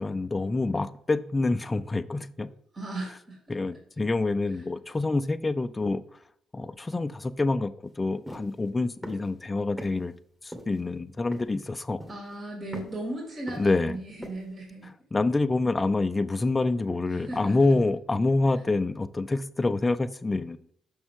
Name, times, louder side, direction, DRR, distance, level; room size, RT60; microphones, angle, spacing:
voice 1, 0.0-2.5 3.5-6.0 6.5-10.1 10.4-12.0 13.6-14.0 15.1-20.7, left 3 dB, 20° left, 12 dB, 0.5 m, -27 dB
voice 2, 2.5-3.4 4.5-4.6 12.1-14.9 17.1-17.7 18.5-18.6, right 2 dB, 45° right, -1 dB, 2.6 m, -37 dB
sound 1, 8.3-8.5 9.0-9.3 9.8-9.9 10.5-10.8 11.3-11.6 12.0-12.3 12.7-13.0 13.5-13.9 14.2-14.4, equal, 5° right, 1.6 m, -40 dB
6.3 x 6.1 x 3.7 m, 0.67 s
cardioid pair, 90°, 0 cm